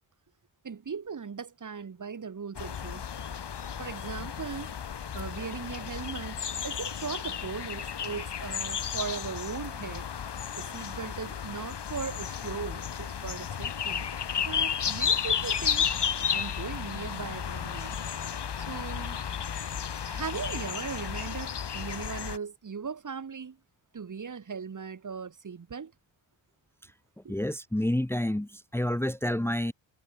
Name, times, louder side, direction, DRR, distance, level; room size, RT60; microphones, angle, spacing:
voice 1, 0.6-3.0 3.8-4.7 5.1-10.1 10.6-14.1 14.4-15.9 16.3-18.0 18.6-19.2 20.0-23.6 23.9-25.9 27.2-27.3, right 6 dB, 40° right, 2.9 m, -38 dB
sound 1, 2.5-22.4, left 8 dB, 60° left, 4.2 m, -33 dB
voice 2, 27.3-29.7, left 1 dB, 5° left, 1.3 m, -29 dB
wide cardioid pair, 145°, 47 cm